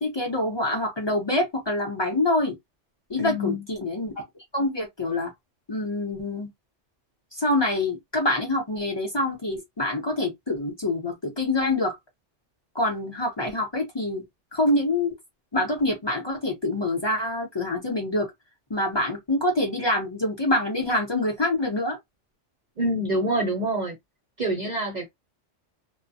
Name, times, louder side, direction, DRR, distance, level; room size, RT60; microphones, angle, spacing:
voice 1, 0.0-2.5 3.1-4.1 4.5-5.3 5.7-6.5 7.3-11.9 12.7-14.2 14.5-15.1 15.5-18.3 18.7-22.0, left 2 dB, 25° left, 0.8 m, -26 dB
voice 2, 3.2-3.6 22.8-24.0 24.4-25.1, right 1 dB, 45° right, 0.6 m, -26 dB
2.3 x 2.2 x 2.7 m
omnidirectional pair, 1.2 m